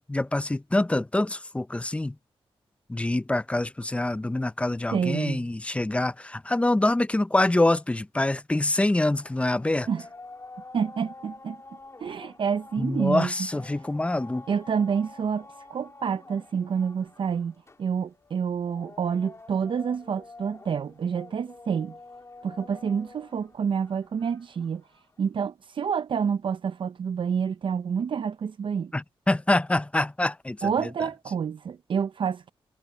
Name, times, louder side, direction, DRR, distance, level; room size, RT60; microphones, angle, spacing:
voice 1, 0.0-2.2 2.9-9.9 12.8-14.4 28.9-31.1, left 2 dB, 10° left, 0.5 m, -25 dB
voice 2, 4.9-5.5 9.9-10.0 10.7-11.6 12.0-13.3 14.5-17.5 17.8-21.9 22.4-24.8 25.2-28.9 30.6-32.5, right 7 dB, 55° right, 0.5 m, -28 dB
sound 1, 8.8-25.2, left 3 dB, 30° left, 2.4 m, -48 dB
wide cardioid pair, 110°, 10 cm